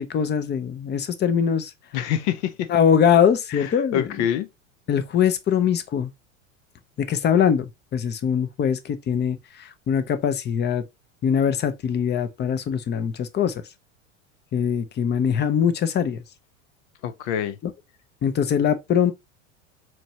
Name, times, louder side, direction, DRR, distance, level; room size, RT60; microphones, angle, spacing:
voice 1, 0.0-1.7 2.7-4.1 4.9-6.1 7.0-10.8 11.2-13.5 14.5-16.2 18.2-19.1, left 8 dB, 25° left, 0.6 m, -22 dB
voice 2, 1.9-2.7 3.5-4.5 17.0-17.6, left 10 dB, 60° left, 0.7 m, -26 dB
4.3 x 3.1 x 3.0 m
hypercardioid pair, 90°, 39 cm